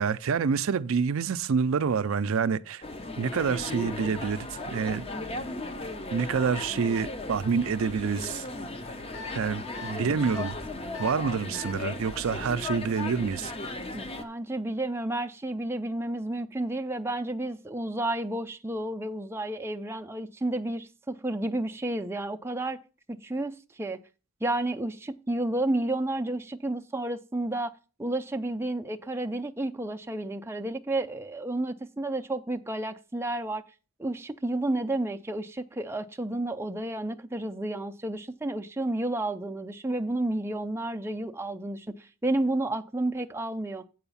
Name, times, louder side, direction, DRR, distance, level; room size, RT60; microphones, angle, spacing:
voice 1, 0.0-2.8 3.2-5.0 6.1-8.5 9.3-10.6 11.0-13.5, right 6 dB, 70° right, 0.4 m, -27 dB
sound 1, 2.8-14.2, left 2 dB, 25° left, 0.7 m, -36 dB
sound 2, 9.1-9.3 9.7-9.9 10.3-10.5 10.9-11.1 11.5-11.7, left 4 dB, 65° left, 1.0 m, -40 dB
voice 2, 13.9-22.8 23.1-24.0 24.4-27.7 28.0-33.6 34.0-43.9, right 1 dB, 10° right, 0.4 m, -31 dB
7.9 x 4.9 x 6.9 m
head